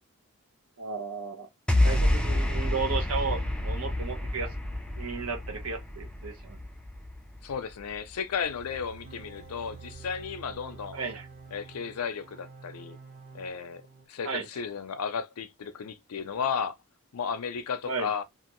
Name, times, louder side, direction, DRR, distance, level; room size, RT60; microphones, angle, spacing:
voice 1, 0.8-1.5 1.8-4.5 5.0-6.6 10.9-11.3 14.2-14.4 17.8-18.1, right 4 dB, 80° right, 1.1 m, -34 dB
sound 1, 1.7-8.1, left 1 dB, 5° left, 0.3 m, -28 dB
voice 2, 7.4-11.0 11.5-13.0 13.3-13.8 14.1-16.8 17.1-18.2, left 6 dB, 85° left, 0.5 m, -34 dB
sound 2, 8.4-12.5, right 7 dB, 60° right, 0.8 m, -51 dB
sound 3, 9.0-14.1, right 3 dB, 35° right, 0.9 m, -50 dB
2.9 x 2.4 x 3.0 m
head